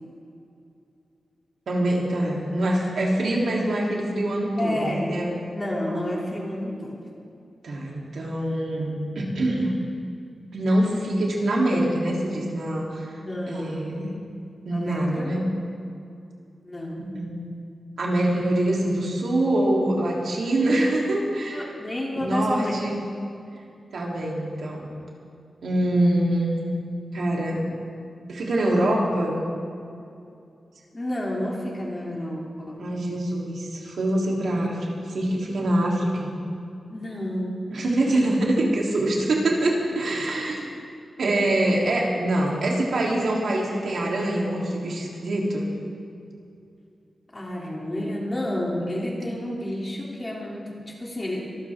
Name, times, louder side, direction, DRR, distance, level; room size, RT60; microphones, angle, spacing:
voice 1, 1.7-5.3 7.6-9.7 10.5-13.2 13.5-14.1 14.6-15.4 17.0-17.5 18.0-21.6 22.2-23.0 23.9-24.9 25.6-26.6 27.1-27.6 28.3-29.4 32.8-36.3 37.7-40.7 41.2-45.6, right 1 dB, 75° right, -3 dB, 3.3 m, -24 dB
voice 2, 4.6-5.2 5.5-7.1 13.1-13.9 14.7-15.5 16.6-17.0 20.6-20.8 21.5-22.9 30.9-32.8 36.9-37.6 38.1-38.2 47.3-51.4, left 1 dB, 20° left, -3 dB, 3.0 m, -30 dB
24.0 x 14.0 x 3.7 m, 2.5 s
wide cardioid pair, 135°, 0 cm